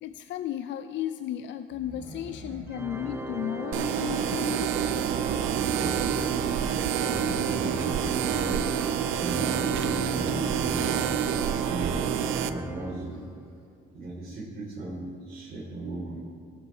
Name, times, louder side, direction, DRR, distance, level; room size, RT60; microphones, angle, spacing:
voice 1, 0.0-4.7, left 11 dB, 70° left, 10 dB, 0.4 m, -34 dB
voice 2, 1.7-2.7 2.9-3.2 5.2-11.1 11.6-13.2 13.9-16.2, right 2 dB, 50° right, -7 dB, 3.2 m, -37 dB
Organ, 2.7-13.3, right 1 dB, 10° right, 0.6 m, -36 dB
sound 1, 3.7-12.5, right 10 dB, 90° right, 0.5 m, -28 dB
18.0 x 6.7 x 4.3 m, 2.3 s
cardioid pair, 90°, 20 cm